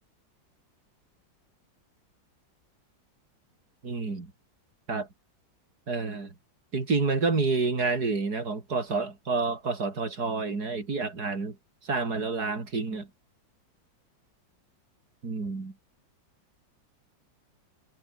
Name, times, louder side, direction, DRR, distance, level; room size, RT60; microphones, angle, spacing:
voice 1, 3.8-4.3 4.9-5.1 5.9-6.3 6.7-11.6 11.8-13.1 15.2-15.7, right 4 dB, 55° right, 4.1 m, -29 dB
omnidirectional pair, 2.0 m